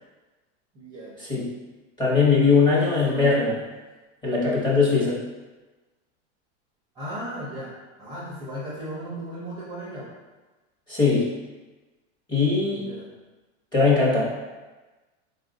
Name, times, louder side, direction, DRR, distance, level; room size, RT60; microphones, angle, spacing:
voice 1, 0.7-1.2 2.7-3.6 6.9-7.7 8.0-10.1 12.6-13.1, equal, 10° right, -7 dB, 0.5 m, -36 dB
voice 2, 2.0-3.5 4.2-5.2 10.9-11.3 12.3-12.9 13.7-14.3, left 4 dB, 10° left, -7 dB, 0.9 m, -20 dB
4.1 x 2.4 x 3.8 m, 1.2 s
supercardioid pair, 155°, 36 cm